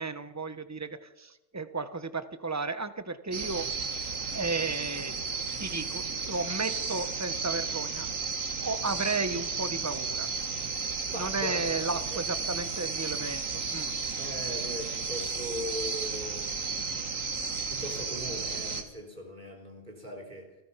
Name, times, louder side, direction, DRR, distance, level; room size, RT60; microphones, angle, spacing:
voice 1, 0.0-3.7 4.3-5.1 5.6-8.1 8.6-10.3 11.1-13.9, right 3 dB, 15° right, 1.1 m, -34 dB
sound 1, 3.3-18.8, right 4 dB, 75° right, 2.2 m, -33 dB
voice 2, 11.1-12.2 14.2-17.2 17.6-20.6, equal, 35° right, 4.2 m, -40 dB
29.0 x 19.5 x 5.8 m
omnidirectional pair, 1.4 m